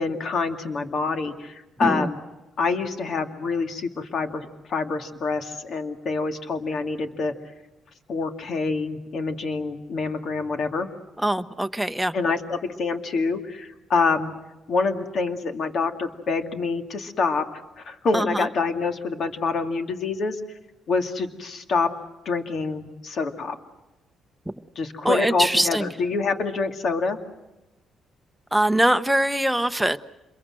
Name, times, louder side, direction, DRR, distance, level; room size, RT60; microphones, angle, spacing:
voice 1, 0.0-2.2 2.6-7.3 8.1-10.9 12.1-14.3 14.7-17.4 17.8-20.4 20.9-21.9 22.3-23.6 24.8-27.2, left 4 dB, 60° left, 6 dB, 2.4 m, -26 dB
voice 2, 11.2-12.1 18.1-18.5 24.5-24.6 25.0-25.9 28.5-30.0, right 1 dB, 5° right, 9 dB, 1.0 m, -22 dB
27.5 x 22.5 x 7.7 m, 0.99 s
cardioid pair, 90°, 0 cm